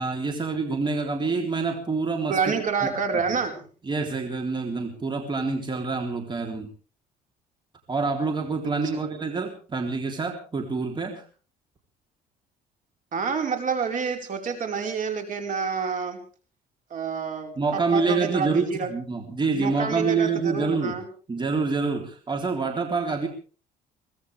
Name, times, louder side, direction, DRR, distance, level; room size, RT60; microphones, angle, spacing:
voice 1, 0.0-2.5 3.8-6.7 7.9-11.2 17.6-21.0 21.3-23.3, right 4 dB, 25° right, 3 dB, 3.5 m, -27 dB
voice 2, 2.3-3.7 8.9-9.0 13.1-16.2 16.9-18.9 19.5-21.1, right 5 dB, 50° right, 4 dB, 4.8 m, -28 dB
23.0 x 18.0 x 3.5 m, 0.39 s
cardioid pair, 110°, 17 cm